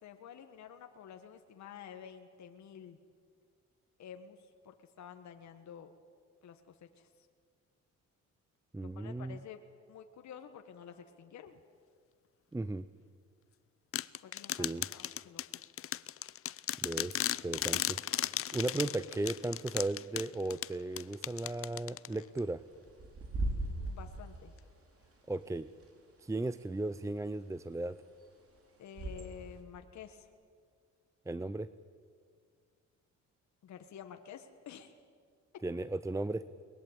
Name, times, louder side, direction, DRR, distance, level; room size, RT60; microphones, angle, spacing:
voice 1, 0.0-3.0 4.0-4.4 4.6-5.9 6.4-7.1 8.8-9.6 9.9-11.6 14.2-15.4 23.8-24.5 28.8-30.3 33.6-34.9, left 8 dB, 65° left, 6 dB, 1.5 m, -50 dB
voice 2, 8.7-9.4 12.5-12.9 14.6-14.8 16.8-22.6 25.3-25.7 26.2-28.0 31.3-31.7 35.6-36.4, right 2 dB, 10° right, 14 dB, 0.6 m, -36 dB
sound 1, 13.9-22.4, left 11 dB, 50° left, 0.6 m, -36 dB
Bird / Wind, 20.9-29.6, right 1 dB, 50° right, 4.6 m, -42 dB
22.5 x 20.5 x 8.8 m, 2.1 s
cardioid pair, 90°, 30 cm